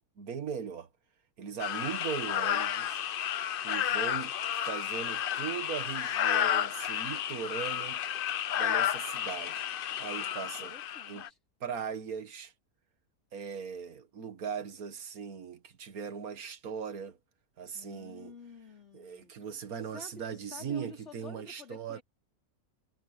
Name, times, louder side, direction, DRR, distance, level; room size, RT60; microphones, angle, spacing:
voice 1, 0.2-0.9 1.4-3.0 3.6-8.0 8.6-9.7 10.0-10.7 11.1-11.2 11.6-12.5 13.3-17.2 17.6-18.3 18.9-22.0, right 7 dB, 75° right, 2.0 m, -39 dB
sound 1, 1.6-11.3, left 10 dB, 65° left, 0.5 m, -32 dB
voice 2, 10.1-11.4 17.7-19.3 19.9-22.0, left 4 dB, 50° left, 4.7 m, -51 dB
omnidirectional pair, 1.6 m